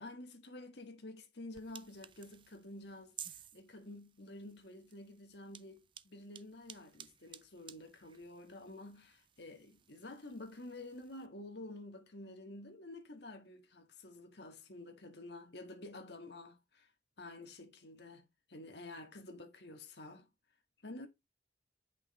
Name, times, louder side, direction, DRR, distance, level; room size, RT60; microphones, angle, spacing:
voice 1, 0.0-16.9 17.2-20.3 20.8-21.1, left 2 dB, 60° left, 1.8 m, -50 dB
sound 1, 1.5-11.3, right 9 dB, 25° right, 0.4 m, -56 dB
8.3 x 5.8 x 4.2 m
head